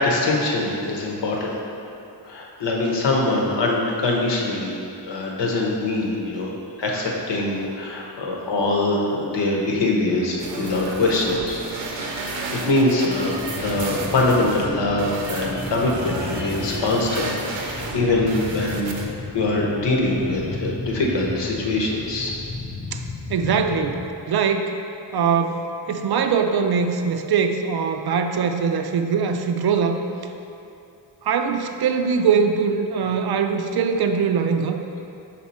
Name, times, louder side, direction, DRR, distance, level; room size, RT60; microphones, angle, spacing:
voice 1, 0.0-1.6 2.3-4.8 5.1-6.5 6.8-11.6 12.1-19.0 19.3-22.3, left 2 dB, 70° left, -2 dB, 1.0 m, -23 dB
sound 1, 10.4-19.1, right 3 dB, 85° right, 0.8 m, -32 dB
sound 2, 13.3-24.1, left 3 dB, 15° left, 0.3 m, -34 dB
voice 2, 23.3-24.0 24.3-24.7 25.1-30.0 31.2-34.8, right 6 dB, 60° right, 6 dB, 0.5 m, -22 dB
5.8 x 4.3 x 4.2 m, 2.7 s
wide cardioid pair, 145°, 44 cm